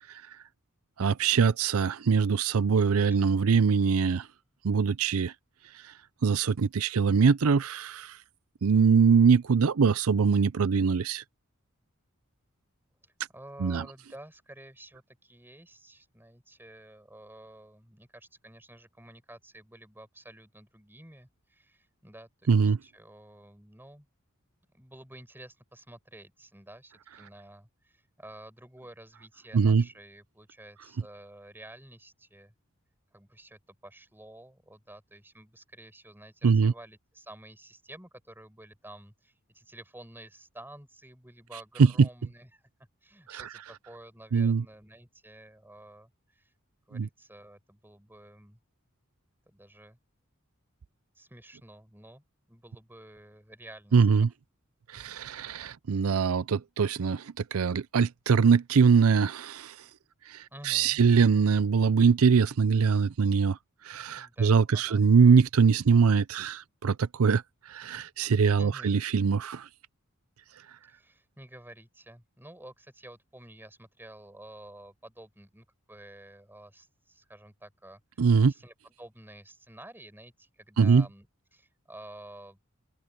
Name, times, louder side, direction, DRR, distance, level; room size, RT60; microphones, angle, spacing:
voice 1, 1.0-4.3 4.6-5.3 5.7-5.9 6.2-8.2 8.6-11.2 13.6-13.8 22.5-22.8 29.5-29.8 36.4-36.7 41.8-42.1 43.3-43.5 44.3-44.6 46.9-47.1 53.9-54.3 54.9-59.8 60.3-63.6 63.8-69.7 78.2-78.5 80.8-81.0, right 5 dB, 85° right, 0.5 m, -23 dB
voice 2, 13.0-24.1 24.7-32.5 33.1-42.6 43.0-46.5 46.9-48.6 49.5-50.0 51.1-54.3 60.5-61.0 64.1-65.0 68.5-69.0 70.9-81.3 81.5-82.6, right 1 dB, 10° right, 5.1 m, -50 dB
open air
head